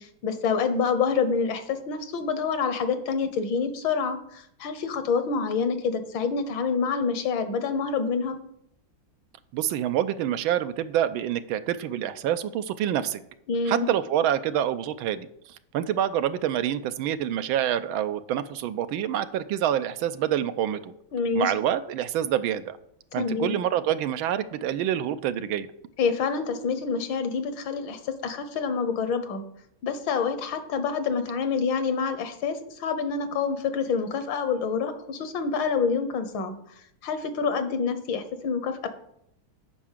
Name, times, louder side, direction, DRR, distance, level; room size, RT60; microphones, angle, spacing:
voice 1, 0.0-8.4 13.5-13.9 21.1-21.5 23.2-23.6 26.0-29.4 29.8-36.6 37.0-38.9, left 5 dB, 70° left, 10 dB, 1.6 m, -27 dB
voice 2, 9.5-13.2 13.7-20.9 21.3-22.8 23.1-25.7, right 10 dB, 80° right, 12 dB, 1.4 m, -27 dB
8.6 x 5.8 x 7.2 m, 0.73 s
omnidirectional pair, 2.3 m